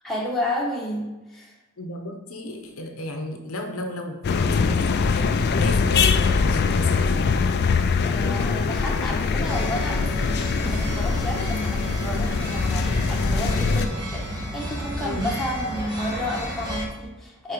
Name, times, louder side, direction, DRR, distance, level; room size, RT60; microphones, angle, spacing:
voice 1, 0.0-1.6 8.0-17.5, left 1 dB, ahead, -5 dB, 1.3 m, -31 dB
voice 2, 1.8-7.2 15.0-15.3, left 1 dB, 65° left, 3 dB, 0.8 m, -33 dB
sound 1, 4.2-13.9, left 5 dB, 45° left, 0.3 m, -23 dB
sound 2, 9.5-16.9, equal, 20° right, 1.1 m, -31 dB
4.5 x 4.5 x 5.0 m, 1.1 s
head